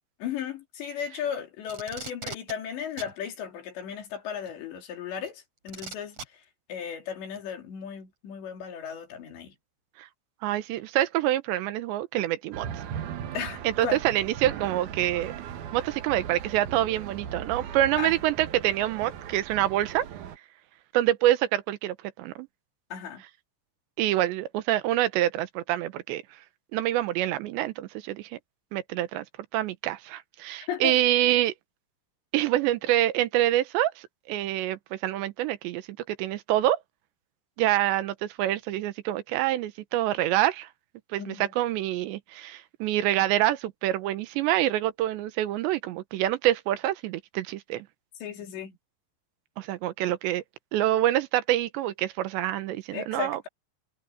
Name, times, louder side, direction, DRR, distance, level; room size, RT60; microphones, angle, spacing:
voice 1, 0.2-6.2 6.7-9.5 13.3-14.0 18.0-18.1 22.9-23.2 30.7-31.0 41.2-41.5 48.2-48.8 52.9-53.5, left 8 dB, 80° left, 5.4 m, -35 dB
Packing tape duct tape, 1.6-2.5 3.0-3.1 4.5-4.6 5.7-6.3 7.3-7.4, right 4 dB, 40° right, 5.0 m, -39 dB
voice 2, 10.4-12.7 13.6-15.3 15.7-20.0 20.9-22.5 24.0-26.2 26.7-28.3 28.7-29.2 29.5-31.5 32.3-36.8 37.6-40.7 41.1-47.9 49.6-50.4 50.7-53.4, right 14 dB, 85° right, 3.3 m, -26 dB
sound 1, 12.5-20.4, right 9 dB, 65° right, 2.1 m, -38 dB
omnidirectional pair, 5.0 m